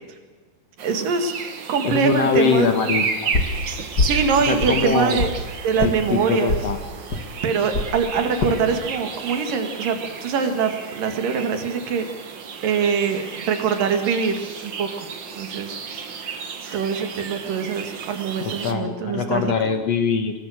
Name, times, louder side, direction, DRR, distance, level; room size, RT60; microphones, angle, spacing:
sound 1, 0.8-18.7, right 6 dB, 45° right, 1.6 m, -33 dB
voice 1, 0.8-1.3 1.7-2.8 4.0-5.3 5.6-6.6 7.4-12.1 12.6-15.1 15.3-15.8 16.7-19.7, right 6 dB, 75° right, 6 dB, 3.8 m, -23 dB
voice 2, 1.8-3.3 4.5-5.2 5.8-6.8 18.4-20.3, left 5 dB, 55° left, 7 dB, 2.3 m, -23 dB
sound 2, 3.3-3.6 4.0-4.3 4.6-5.4 5.8-6.0 6.5-6.7 7.1-7.3 7.7-7.9 8.4-8.6 9.2-9.5, left 3 dB, 40° left, 1.8 m, -23 dB
23.0 x 22.5 x 6.5 m, 1.3 s
omnidirectional pair, 4.0 m